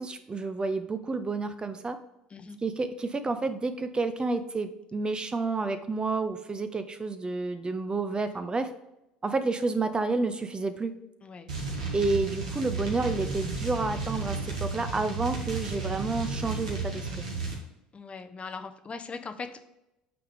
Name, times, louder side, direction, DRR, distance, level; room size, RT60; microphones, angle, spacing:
voice 1, 0.0-2.0 2.6-8.7 9.2-10.9 11.9-17.2, right 3 dB, 20° right, 9 dB, 0.6 m, -30 dB
sound 1, 11.5-17.6, right 3 dB, 85° right, 1.6 m, -33 dB
voice 2, 17.9-19.7, left 4 dB, 30° left, 8 dB, 0.7 m, -40 dB
8.6 x 3.6 x 3.5 m, 0.89 s
hypercardioid pair, 65°, 4 cm